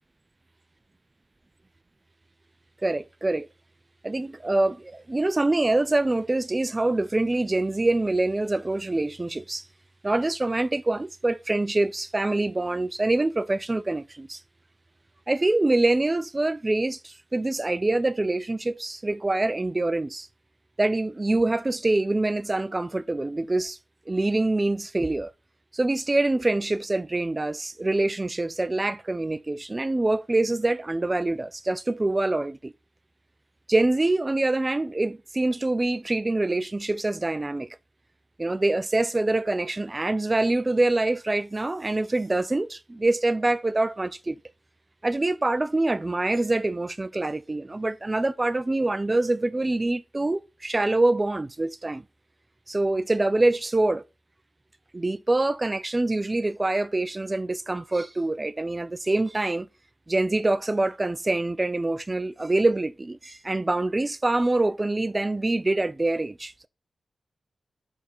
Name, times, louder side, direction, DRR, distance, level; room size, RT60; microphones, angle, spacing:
voice 1, 2.8-3.5 4.0-9.6 10.0-14.4 15.3-20.3 20.8-23.8 24.1-25.3 25.7-32.7 33.7-37.7 38.4-44.4 45.0-52.0 52.7-54.0 54.9-59.7 60.1-66.7, right 2 dB, 30° right, 0.5 m, -25 dB
6.2 x 4.3 x 3.8 m
cardioid pair, 45°, 0 cm